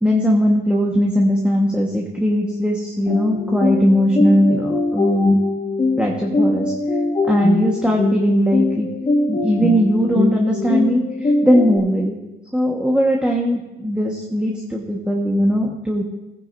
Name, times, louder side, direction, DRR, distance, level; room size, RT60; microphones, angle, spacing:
voice 1, 0.0-5.4 6.0-6.7 7.3-8.9 9.3-12.2 12.5-16.0, equal, 5° right, -1 dB, 1.4 m, -19 dB
sound 1, 3.1-11.8, left 2 dB, 35° left, 2.2 m, -21 dB
17.5 x 10.0 x 2.7 m, 1.0 s
cardioid pair, 90°, 20 cm